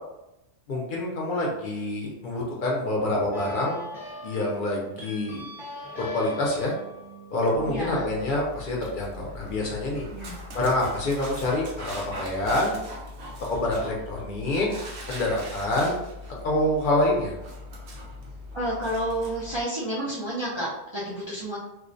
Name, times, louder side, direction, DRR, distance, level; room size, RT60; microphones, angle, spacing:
voice 1, 0.7-3.9 4.2-5.4 6.0-6.7 7.3-10.0 10.5-12.7 13.4-14.7 15.1-15.9 16.4-17.3, left 1 dB, 60° left, -3 dB, 0.6 m, -26 dB
sound 1, 3.3-8.4, left 1 dB, ahead, 0.6 m, -41 dB
Dog, 7.5-19.6, left 1 dB, 85° right, 0.9 m, -40 dB
voice 2, 7.7-8.1 10.1-10.5 18.5-21.6, right 1 dB, 45° right, -7 dB, 0.3 m, -30 dB
2.4 x 2.0 x 2.5 m, 0.89 s
omnidirectional pair, 1.1 m